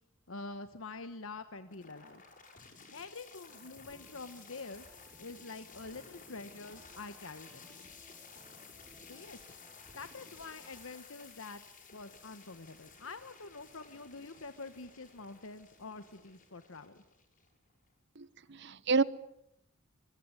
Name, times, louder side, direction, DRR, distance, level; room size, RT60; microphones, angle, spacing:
voice 1, 0.3-2.2 2.9-4.9 5.2-7.5 9.0-9.4 9.9-11.6 11.9-17.0, left 3 dB, 80° left, 10 dB, 1.2 m, -46 dB
sound 1, 1.7-17.7, left 5 dB, 40° left, 7.4 m, -55 dB
sound 2, 3.5-10.8, right 1 dB, 10° right, 4.9 m, -62 dB
voice 2, 18.2-19.0, right 4 dB, 60° right, 18 dB, 1.0 m, -30 dB
24.0 x 22.0 x 9.8 m, 0.79 s
head